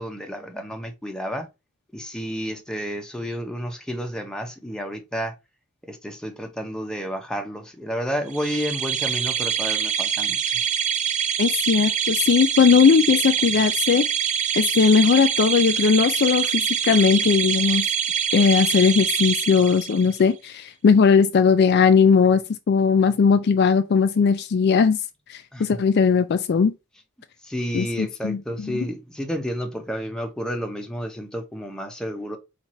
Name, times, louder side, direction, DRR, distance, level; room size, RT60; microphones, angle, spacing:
voice 1, 0.0-1.5 1.9-5.3 5.9-10.6 25.5-25.8 27.4-32.4, equal, 5° left, 0.7 m, -31 dB
sound 1, 8.3-20.2, right 8 dB, 30° right, 0.3 m, -25 dB
voice 2, 11.4-14.1 14.6-17.9 18.3-22.4 22.7-25.0 25.3-26.7 27.7-28.8, left 6 dB, 50° left, 0.3 m, -18 dB
4.5 x 2.5 x 4.1 m
head